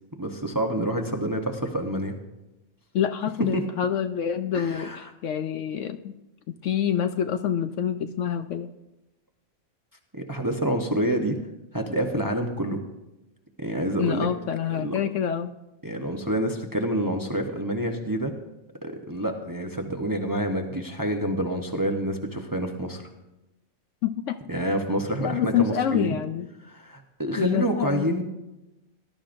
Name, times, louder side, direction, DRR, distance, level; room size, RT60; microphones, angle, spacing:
voice 1, 0.2-2.2 3.5-3.7 4.5-5.0 10.1-11.4 11.7-12.8 13.6-14.3 14.8-15.0 15.8-18.3 18.8-23.1 24.5-26.1 26.7-28.2, right 1 dB, 20° right, 3 dB, 0.7 m, -27 dB
voice 2, 2.9-6.1 6.5-8.7 14.0-15.5 24.0-24.4 25.2-26.5 27.4-28.1, left 9 dB, 65° left, 9 dB, 0.8 m, -27 dB
19.0 x 12.0 x 2.6 m, 0.98 s
omnidirectional pair, 1.5 m